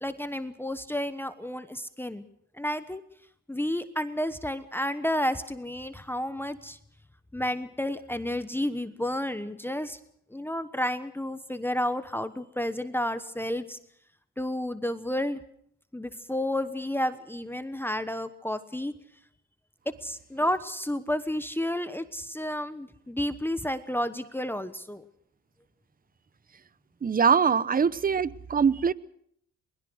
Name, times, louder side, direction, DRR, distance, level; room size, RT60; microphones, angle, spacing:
voice 1, 0.0-2.2 2.6-3.0 3.5-6.8 7.3-10.0 10.3-13.8 14.4-15.4 15.9-18.9 19.9-25.0, left 1 dB, 5° left, 11 dB, 1.1 m, -31 dB
voice 2, 27.0-28.9, right 6 dB, 30° right, 18 dB, 0.8 m, -23 dB
22.0 x 21.0 x 6.3 m, 0.70 s
cardioid pair, 90°, 30 cm